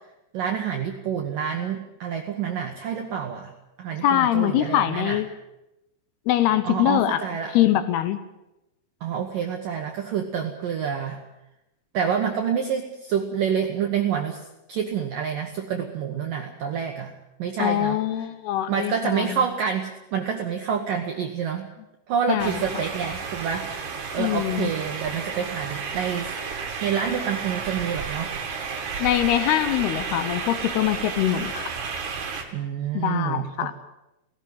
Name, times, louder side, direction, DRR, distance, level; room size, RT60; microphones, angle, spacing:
voice 1, 0.3-3.5 3.8-5.2 6.6-7.6 9.0-11.2 11.9-17.1 17.4-18.0 18.7-21.7 22.1-26.3 26.8-28.3 32.5-33.7, right 7 dB, 70° right, 3 dB, 2.1 m, -28 dB
voice 2, 4.0-5.3 6.3-7.2 7.5-8.2 17.6-19.4 22.3-22.5 24.2-24.7 29.0-31.7 32.9-33.7, left 12 dB, 80° left, 12 dB, 2.3 m, -23 dB
sound 1, 22.4-32.4, right 5 dB, 50° right, 2.9 m, -32 dB
17.5 x 17.5 x 9.3 m, 0.92 s
omnidirectional pair, 5.8 m